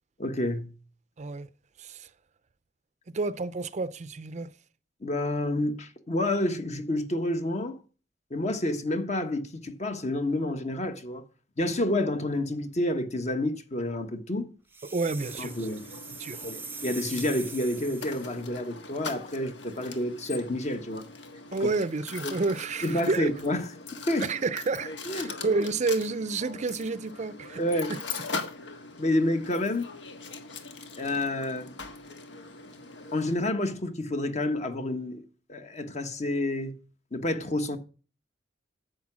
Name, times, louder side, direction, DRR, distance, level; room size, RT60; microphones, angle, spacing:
voice 1, 0.2-0.7 5.0-7.8 8.3-11.2 11.6-14.5 15.4-15.9 16.4-21.1 21.6-21.7 22.2-22.3 22.8-24.3 25.0-25.3 27.6-27.9 29.0-29.9 31.0-31.8 33.1-35.2 35.5-36.8 37.1-37.8, left 1 dB, 40° left, 1.2 m, -29 dB
voice 2, 1.2-1.5 1.8-2.1 3.1-4.5 14.9-15.7 16.2-16.5 21.5-23.3 24.2-27.6 27.9-28.0, right 3 dB, 40° right, 0.5 m, -30 dB
sound 1, 14.7-18.4, right 4 dB, 10° right, 0.8 m, -42 dB
Mechanisms, 15.2-33.3, left 4 dB, 75° left, 1.5 m, -41 dB
10.5 x 7.9 x 6.1 m
head